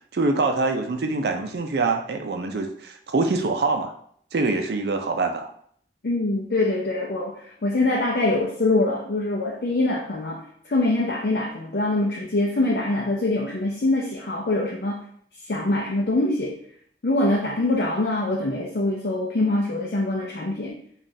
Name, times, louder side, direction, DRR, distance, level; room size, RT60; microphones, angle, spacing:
voice 1, 0.1-3.9 4.3-5.5, right 3 dB, 70° right, 4 dB, 0.5 m, -24 dB
voice 2, 6.0-10.4 10.7-15.0 15.5-16.6 17.0-20.8, left 2 dB, 60° left, -2 dB, 0.5 m, -24 dB
5.0 x 2.4 x 2.7 m, 0.63 s
head